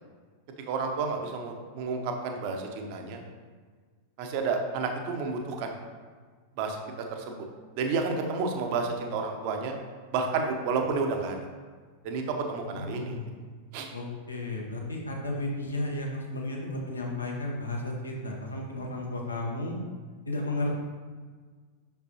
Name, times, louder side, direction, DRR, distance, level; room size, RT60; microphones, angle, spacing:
voice 1, 0.7-3.2 4.2-5.7 6.6-6.8 7.1-7.4 7.8-9.8 10.1-11.4 12.0-13.2 13.7-13.9, right 4 dB, 45° right, 4 dB, 0.8 m, -30 dB
voice 2, 12.7-13.3 13.9-19.8 20.3-20.7, left 2 dB, 80° left, 0 dB, 1.0 m, -33 dB
6.1 x 5.5 x 2.8 m, 1.5 s
figure-of-eight pair, 90°, 0 cm